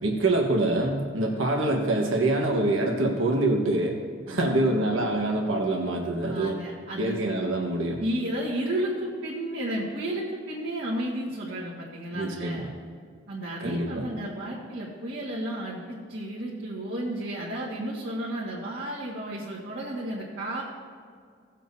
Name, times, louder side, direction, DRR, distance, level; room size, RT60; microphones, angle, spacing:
voice 1, 0.0-3.9 4.3-6.5 7.0-8.0 12.1-12.7 13.6-14.0, right 2 dB, 85° right, 0 dB, 1.4 m, -25 dB
voice 2, 4.3-4.8 6.2-7.5 8.0-12.7 13.3-20.6, right 1 dB, 60° right, -8 dB, 1.8 m, -33 dB
17.5 x 7.4 x 2.7 m, 2.1 s
head